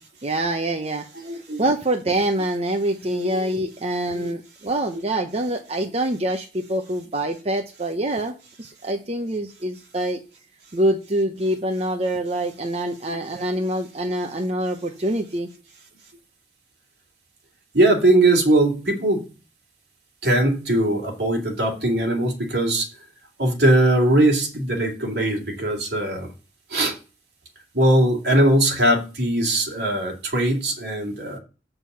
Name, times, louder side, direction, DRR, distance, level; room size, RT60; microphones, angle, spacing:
voice 1, 0.2-1.1 1.6-10.2 10.7-15.5, right 1 dB, 35° right, 3 dB, 0.8 m, -25 dB
voice 2, 1.2-1.6 3.0-3.5 4.1-4.3 12.7-13.2 17.7-19.3 20.2-22.9 23.4-26.3 26.7-26.9 27.7-31.4, right 1 dB, 65° right, 0 dB, 2.7 m, -20 dB
7.6 x 6.8 x 5.6 m, 0.34 s
head